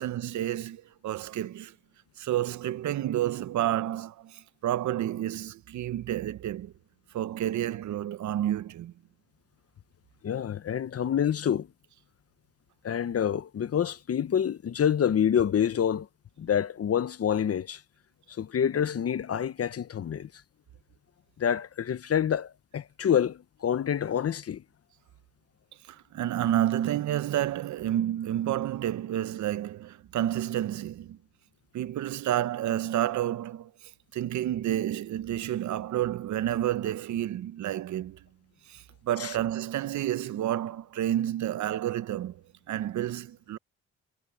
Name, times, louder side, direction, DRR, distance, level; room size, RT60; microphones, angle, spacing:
voice 1, 0.0-1.7 2.2-6.7 7.1-8.9 25.9-31.2 31.7-33.7 34.1-38.2 38.7-43.6, right 12 dB, 75° right, 1.0 m, -30 dB
voice 2, 10.2-11.7 12.8-16.1 16.4-17.8 18.4-20.3 21.4-24.6 39.2-39.3, left 9 dB, 55° left, 1.1 m, -27 dB
supercardioid pair, 60°, 29 cm